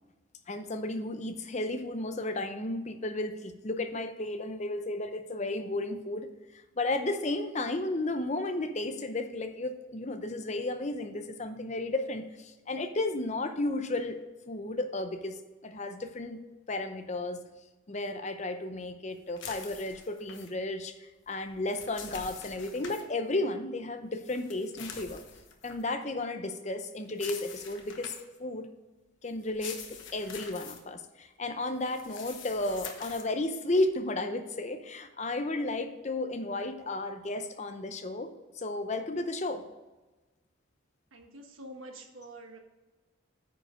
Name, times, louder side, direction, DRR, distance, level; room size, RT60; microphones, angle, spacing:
voice 1, 0.5-6.3 6.8-14.2 14.5-16.4 16.7-17.4 17.9-25.2 25.6-28.1 28.4-28.7 29.2-39.6, left 2 dB, 35° left, 8 dB, 0.6 m, -33 dB
sound 1, 19.4-20.5 21.5-23.0 24.2-25.8 27.1-28.4 29.4-30.8 31.8-33.3, left 6 dB, 70° left, 1.2 m, -45 dB
voice 2, 41.1-42.6, right 1 dB, 80° right, 4 dB, 1.3 m, -46 dB
9.3 x 5.1 x 5.0 m, 1.2 s
head